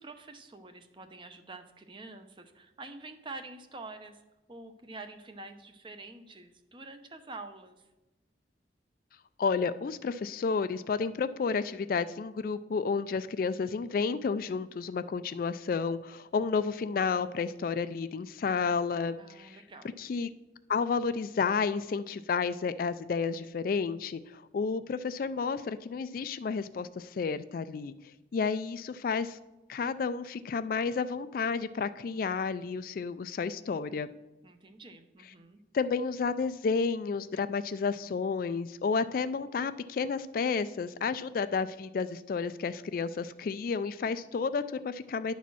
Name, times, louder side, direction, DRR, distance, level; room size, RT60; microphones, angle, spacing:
voice 1, 0.0-4.2 4.5-7.9 19.2-19.9 34.4-35.6, right 3 dB, 30° right, 8 dB, 0.6 m, -47 dB
voice 2, 9.4-19.6 20.0-20.3 20.7-27.9 28.3-29.4 29.7-34.1 35.7-45.3, left 5 dB, 50° left, 13 dB, 0.3 m, -31 dB
10.5 x 4.2 x 6.1 m, 1.0 s
head